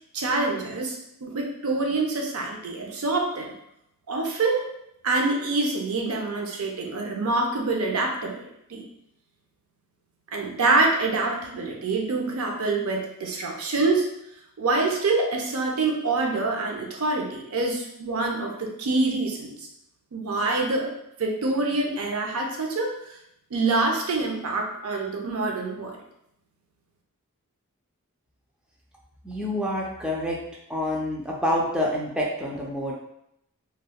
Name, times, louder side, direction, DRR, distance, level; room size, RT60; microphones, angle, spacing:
voice 1, 0.1-3.5 4.1-4.7 5.0-8.8 10.3-14.1 14.6-19.7 20.1-20.9 21.2-22.9 23.5-26.0, right 3 dB, 70° right, 1 dB, 0.5 m, -26 dB
voice 2, 29.2-30.4 30.7-32.9, left 1 dB, 5° right, -4 dB, 0.4 m, -27 dB
3.4 x 2.2 x 2.2 m, 0.79 s
head